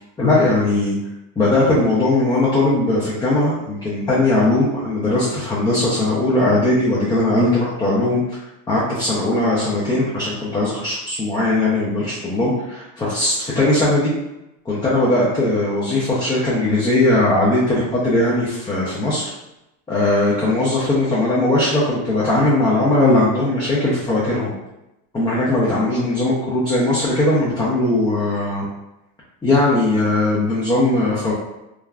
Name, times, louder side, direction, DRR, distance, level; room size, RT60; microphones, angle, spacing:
voice 1, 0.2-1.0 1.4-8.4 8.7-14.1 14.7-19.3 19.9-24.5 25.1-28.7 29.4-31.3, left 2 dB, 10° left, -7 dB, 0.3 m, -19 dB
3.4 x 2.1 x 2.3 m, 0.92 s
cardioid pair, 130°, 40 cm